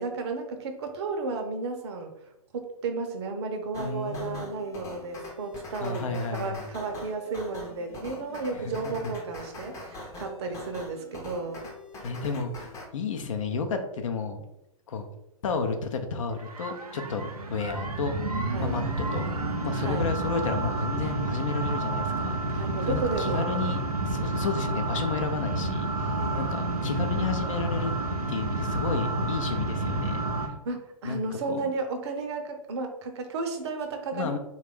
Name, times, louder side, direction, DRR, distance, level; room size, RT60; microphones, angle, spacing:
voice 1, 0.0-2.2 2.5-11.6 18.5-18.8 19.7-20.0 22.5-23.5 26.2-26.5 30.4-34.4, right 3 dB, 45° right, 5 dB, 0.6 m, -33 dB
sound 1, 3.7-12.9, left 2 dB, 15° left, 0.7 m, -43 dB
voice 2, 3.8-4.4 5.8-6.7 8.6-9.1 10.4-10.5 12.0-14.4 14.9-15.1 15.4-18.1 18.6-18.8 19.1-19.3 19.6-22.4 22.8-27.9 28.3-30.3 31.0-31.7 34.1-34.4, left 5 dB, 60° left, 6 dB, 0.6 m, -32 dB
sound 2, 16.4-30.5, right 2 dB, 85° right, 0.6 m, -29 dB
3.2 x 2.4 x 3.5 m, 0.84 s
figure-of-eight pair, 120°, 19 cm